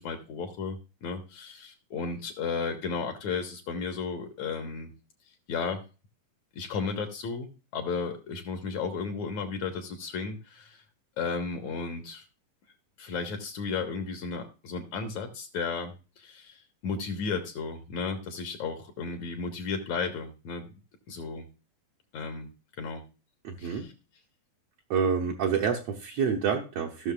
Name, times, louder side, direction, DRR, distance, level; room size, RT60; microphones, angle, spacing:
voice 1, 0.0-4.9 5.5-5.8 6.5-10.8 11.2-12.2 13.0-20.7 21.1-21.5 22.1-22.5 22.8-23.0 23.6-23.9, left 5 dB, 65° left, 6 dB, 2.2 m, -34 dB
voice 2, 23.4-23.9 24.9-27.1, right 6 dB, 70° right, 0 dB, 1.5 m, -28 dB
17.0 x 6.3 x 2.4 m, 0.32 s
omnidirectional pair, 4.1 m